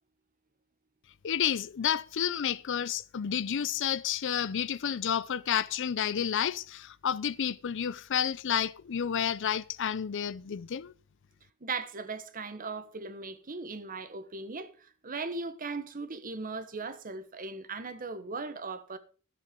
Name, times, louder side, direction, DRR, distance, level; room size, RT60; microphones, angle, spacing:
voice 1, 1.2-10.9, left 8 dB, 60° left, 0.5 m, -30 dB
voice 2, 11.6-14.7 15.0-19.0, right 4 dB, 40° right, 1.2 m, -38 dB
12.5 x 7.6 x 5.2 m
head